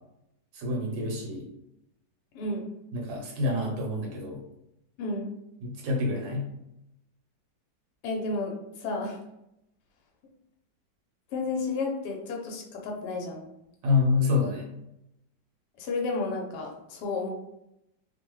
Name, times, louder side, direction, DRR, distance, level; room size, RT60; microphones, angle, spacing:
voice 1, 0.5-1.5 2.9-4.4 5.6-6.5 13.8-14.7, left 3 dB, 80° right, 0 dB, 1.4 m, -27 dB
voice 2, 5.0-5.4 8.0-9.2 11.3-13.4 15.8-17.3, left 3 dB, 70° left, 0 dB, 1.2 m, -32 dB
3.2 x 2.1 x 3.0 m, 0.85 s
omnidirectional pair, 1.9 m